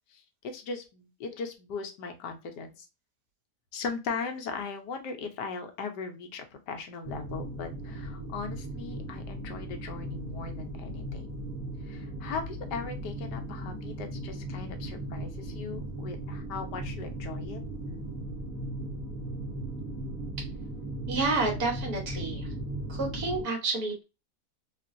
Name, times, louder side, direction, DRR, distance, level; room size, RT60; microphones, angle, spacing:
voice 1, 0.1-2.9 3.7-11.3 11.8-17.6, left 5 dB, 85° left, 5 dB, 1.4 m, -38 dB
sound 1, 7.0-23.4, right 1 dB, 30° right, 1.8 m, -37 dB
voice 2, 21.1-22.5 22.9-24.0, right 3 dB, 65° right, 0 dB, 1.6 m, -29 dB
3.7 x 2.5 x 2.5 m, 0.28 s
omnidirectional pair, 1.8 m